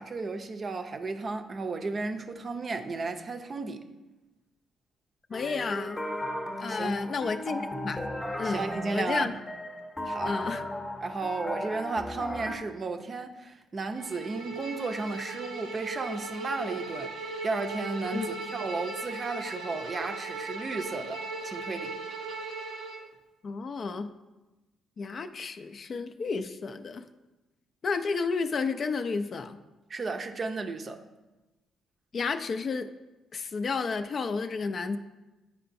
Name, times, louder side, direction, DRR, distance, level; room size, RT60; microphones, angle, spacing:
voice 1, 0.0-3.8 6.7-7.0 8.4-9.3 10.0-10.4 11.0-17.1 17.4-22.0 29.9-31.0, right 3 dB, 40° right, 0.5 m, -34 dB
voice 2, 5.3-6.0 6.6-8.0 8.4-8.6 8.9-9.3 10.3-10.6 18.1-18.3 23.4-24.2 25.0-27.0 27.8-29.6 32.1-32.9 33.3-35.0, left 4 dB, 45° left, 0.3 m, -31 dB
sound 1, 5.3-12.6, left 1 dB, 15° left, 0.8 m, -35 dB
Bowed string instrument, 13.9-23.1, right 3 dB, 85° right, 0.7 m, -38 dB
8.8 x 4.6 x 2.6 m
cardioid pair, 90°, 0 cm